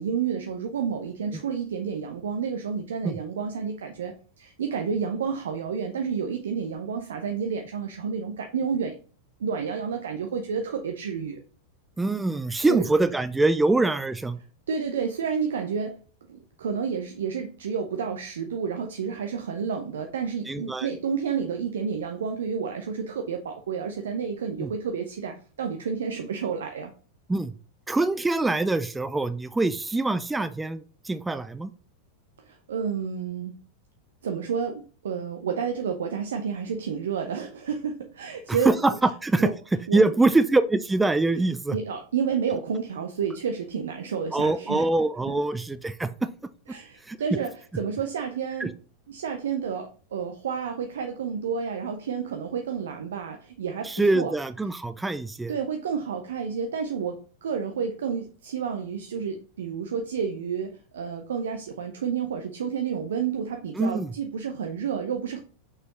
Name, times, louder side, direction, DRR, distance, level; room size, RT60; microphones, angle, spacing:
voice 1, 0.0-9.0 9.4-11.4 12.7-12.8 14.7-16.0 16.3-26.9 32.4-33.5 34.2-38.9 39.4-39.5 39.9-40.0 41.7-44.9 45.3-45.4 46.7-48.8 49.1-54.3 55.5-65.4, right 6 dB, 65° right, 5 dB, 0.6 m, -30 dB
voice 2, 12.0-14.4 20.5-20.9 24.6-24.7 27.3-27.5 27.9-31.7 38.5-39.5 39.9-41.8 44.3-46.3 47.1-47.2 48.6-48.7 53.8-55.5 63.8-64.1, right 2 dB, 10° right, 13 dB, 0.4 m, -24 dB
6.2 x 4.9 x 3.1 m, 0.40 s
figure-of-eight pair, 90°, 0 cm